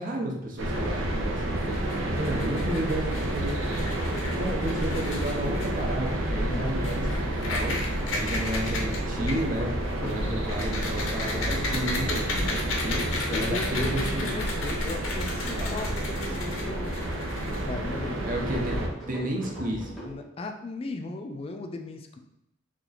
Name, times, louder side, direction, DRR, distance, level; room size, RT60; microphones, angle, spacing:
voice 1, 0.0-7.8 8.1-9.7 10.0-14.3 15.5-15.9 18.2-20.0, right 1 dB, 45° right, 0 dB, 0.7 m, -32 dB
sound 1, 0.6-18.9, right 1 dB, 85° right, 0.6 m, -30 dB
sound 2, 1.7-18.0, left 2 dB, 75° left, 0.6 m, -36 dB
voice 2, 6.5-6.8 10.0-10.4 13.3-18.2 20.1-22.2, left 2 dB, 30° left, 5 dB, 0.3 m, -37 dB
sound 3, 8.8-20.2, equal, ahead, 0.8 m, -42 dB
2.9 x 2.4 x 4.0 m, 0.87 s
head